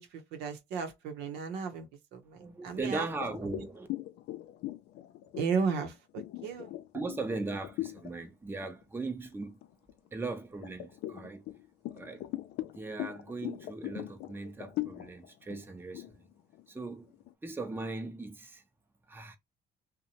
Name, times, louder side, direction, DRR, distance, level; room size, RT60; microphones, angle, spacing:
voice 1, 0.0-3.1 5.3-6.7, right 5 dB, 85° right, 0.7 m, -35 dB
voice 2, 2.4-3.9 6.9-9.6 10.1-11.4 11.9-12.3 12.7-16.3 16.7-17.1 17.4-18.6 19.1-19.4, right 3 dB, 15° right, 0.6 m, -38 dB
sound 1, 3.0-8.1 8.6-8.8 9.3-10.1 10.6-17.3, left 15 dB, 75° left, 0.4 m, -40 dB
2.8 x 2.1 x 2.7 m
cardioid pair, 110°, 17 cm